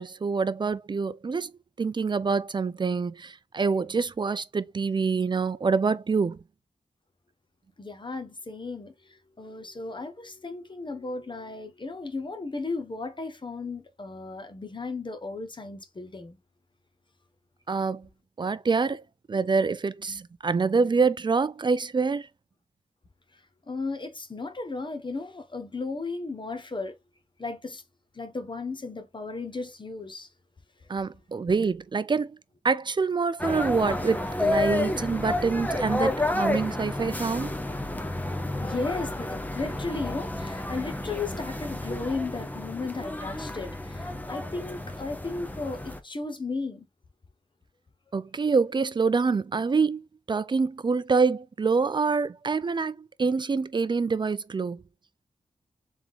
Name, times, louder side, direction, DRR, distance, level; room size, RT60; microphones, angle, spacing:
voice 1, 0.0-1.5 1.8-6.4 17.7-18.1 18.4-19.0 19.3-22.3 30.9-32.4 32.6-37.5 48.1-54.8, right 4 dB, 35° right, 0.4 m, -26 dB
voice 2, 7.8-16.4 23.7-26.9 27.4-27.8 28.1-30.3 38.3-46.9, left 3 dB, 35° left, 1.0 m, -35 dB
sound 1, 33.4-46.0, left 2 dB, 10° left, 0.9 m, -31 dB
3.6 x 3.5 x 3.2 m
cardioid pair, 50°, 13 cm